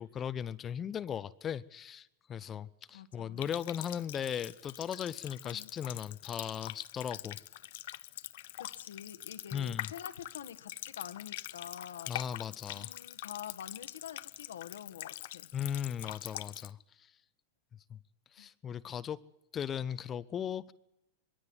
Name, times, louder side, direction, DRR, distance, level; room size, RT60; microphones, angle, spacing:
voice 1, 0.0-7.4 9.5-9.9 12.1-12.9 15.5-17.1 17.9-18.0 18.3-19.2 19.5-20.7, left 8 dB, 30° left, 15 dB, 0.8 m, -37 dB
voice 2, 2.9-3.4 5.4-5.7 8.6-12.1 12.7-15.5 18.4-18.5, left 9 dB, 85° left, 9 dB, 1.5 m, -47 dB
Water tap faucet, 3.4-16.7, left 15 dB, 65° left, 0.7 m, -44 dB
21.5 x 16.5 x 9.4 m, 0.89 s
hypercardioid pair, 110°, 0 cm